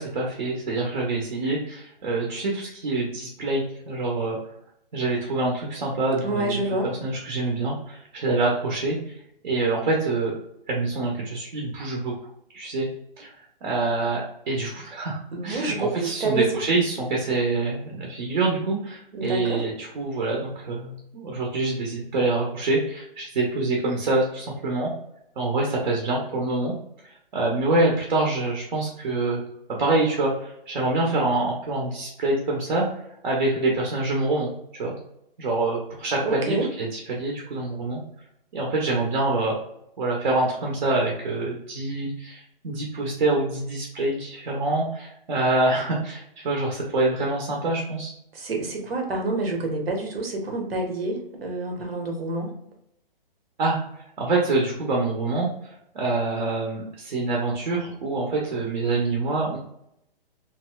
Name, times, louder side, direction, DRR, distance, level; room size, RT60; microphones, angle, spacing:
voice 1, 0.0-4.4 4.9-9.2 9.4-10.3 10.7-12.1 12.5-12.9 13.2-13.4 13.6-24.9 25.4-26.7 27.0-29.4 29.8-32.9 33.2-34.9 35.4-38.0 38.5-39.6 40.0-48.1 53.6-53.8 54.2-59.6, right 2 dB, 60° right, -1 dB, 0.8 m, -26 dB
voice 2, 6.2-6.9 15.3-16.5 19.1-19.6 36.2-36.7 48.3-52.5, right 2 dB, 85° right, 2 dB, 1.1 m, -27 dB
3.1 x 2.6 x 2.2 m, 0.76 s
hypercardioid pair, 170°, 29 cm